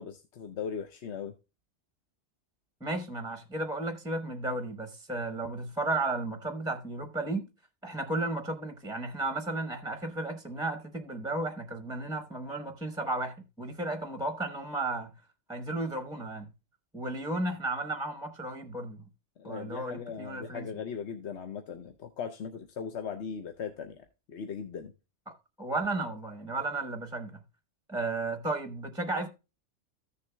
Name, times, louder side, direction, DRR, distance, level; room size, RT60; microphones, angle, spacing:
voice 1, 0.0-1.3 19.4-24.9, left 7 dB, 70° left, 1.0 m, -39 dB
voice 2, 2.8-7.4 7.8-15.1 15.5-16.5 16.9-19.0 19.4-20.7 25.3-27.4 27.9-29.3, right 2 dB, 5° right, 0.8 m, -34 dB
14.5 x 6.8 x 2.2 m
omnidirectional pair, 1.2 m